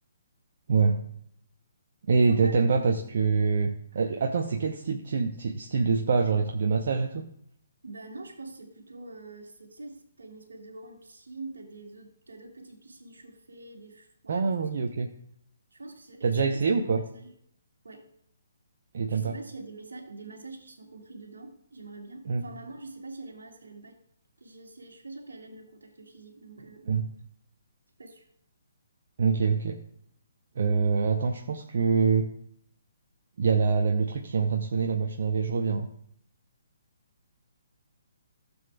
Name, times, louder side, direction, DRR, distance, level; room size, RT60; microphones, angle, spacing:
voice 1, 0.7-1.0 2.1-7.2 14.3-15.1 16.2-17.0 18.9-19.3 22.2-22.4 26.9-27.1 29.2-29.8 30.6-32.3 33.4-35.9, right 5 dB, 55° right, 3 dB, 0.8 m, -25 dB
voice 2, 2.2-2.5 2.9-3.1 7.8-14.7 15.7-16.6 16.9-17.3 17.8-18.1 19.1-24.0 24.4-26.9 28.0-28.3, right 3 dB, 70° right, 3 dB, 1.8 m, -45 dB
15.0 x 7.1 x 2.3 m, 0.69 s
figure-of-eight pair, 130°, 0 cm